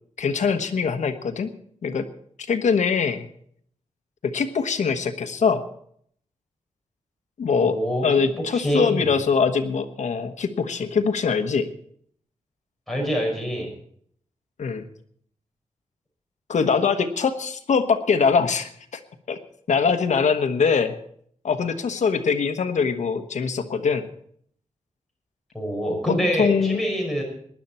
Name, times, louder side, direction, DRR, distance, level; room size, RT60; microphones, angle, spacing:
voice 1, 0.2-1.5 1.8-2.1 2.4-3.3 4.2-5.6 7.4-7.8 8.0-11.7 14.6-14.9 16.5-19.0 19.3-19.4 19.7-21.0 21.4-24.1 26.4-26.8, left 5 dB, 70° left, 7 dB, 1.2 m, -22 dB
voice 2, 7.6-8.1 8.4-9.1 12.9-13.7 25.5-27.2, equal, ahead, -2 dB, 5.5 m, -25 dB
19.5 x 11.0 x 4.4 m, 0.63 s
wide cardioid pair, 155°, 13 cm